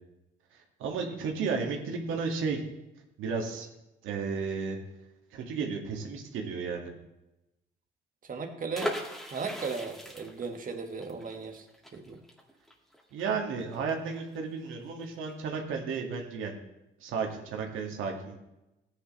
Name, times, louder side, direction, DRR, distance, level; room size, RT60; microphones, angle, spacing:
voice 1, 0.8-2.6 3.2-3.7 4.0-4.8 5.3-6.9 13.1-16.6 17.0-18.4, right 5 dB, 85° right, 2 dB, 2.1 m, -33 dB
voice 2, 8.2-9.0 9.3-11.7 11.9-12.2, right 4 dB, 45° right, 5 dB, 1.7 m, -36 dB
sound 1, 8.7-14.4 14.7-14.8 15.0-15.3, equal, ahead, 2.1 m, -39 dB
15.5 x 9.7 x 3.2 m, 0.94 s
cardioid pair, 90°, 20 cm